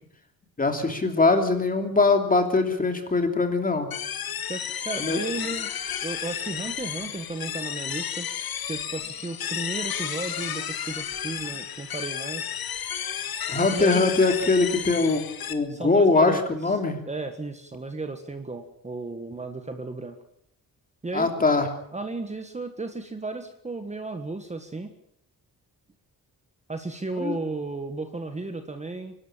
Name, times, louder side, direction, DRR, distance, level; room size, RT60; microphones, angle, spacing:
voice 1, 0.6-3.9 5.0-5.2 13.5-17.0 21.1-21.7 27.2-27.4, left 3 dB, 25° left, 5 dB, 2.9 m, -22 dB
sound 1, 3.9-15.5, left 9 dB, 75° left, 1.7 m, -32 dB
voice 2, 4.5-5.7 6.0-8.3 8.7-12.6 13.7-14.0 15.7-16.8 17.1-20.2 21.0-21.3 21.9-24.9 26.7-29.1, right 3 dB, 20° right, 7 dB, 1.5 m, -34 dB
24.5 x 12.5 x 8.9 m, 0.70 s
wide cardioid pair, 155°, 36 cm